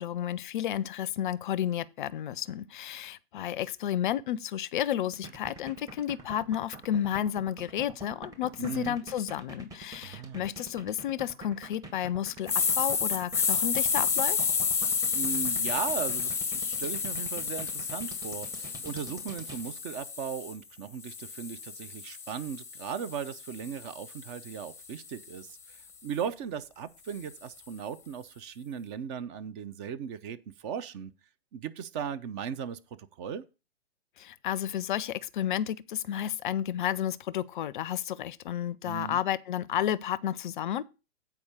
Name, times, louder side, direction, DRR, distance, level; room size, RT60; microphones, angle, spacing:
voice 1, 0.0-14.5 34.2-40.8, left 11 dB, 50° left, 0.5 m, -32 dB
sound 1, 5.1-19.6, right 2 dB, 10° right, 1.2 m, -45 dB
voice 2, 8.6-9.0 10.0-10.4 15.1-31.1 31.5-32.8 33.2-33.4 38.8-39.2, right 7 dB, 25° right, 0.5 m, -37 dB
sound 2, 12.5-20.5 21.0-25.2, left 6 dB, 10° left, 0.8 m, -31 dB
8.6 x 4.7 x 6.5 m
hypercardioid pair, 125°, 33 cm